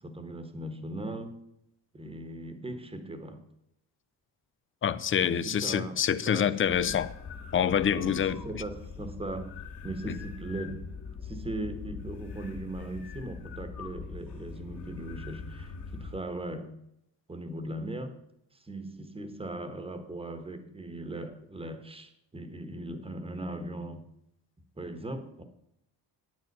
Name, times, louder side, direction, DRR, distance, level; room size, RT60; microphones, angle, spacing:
voice 1, 0.0-1.4 1.9-3.4 5.2-5.9 6.2-7.0 7.9-9.6 9.8-10.9 11.2-16.8 17.3-18.1 18.5-24.1 24.8-25.4, right 1 dB, 15° right, 1.2 m, -39 dB
voice 2, 4.8-7.1 7.5-8.6 10.1-10.2, left 8 dB, 30° left, 0.5 m, -27 dB
sound 1, 6.6-16.2, left 5 dB, 55° left, 2.4 m, -42 dB
9.5 x 8.8 x 5.4 m
cardioid pair, 140°, 42 cm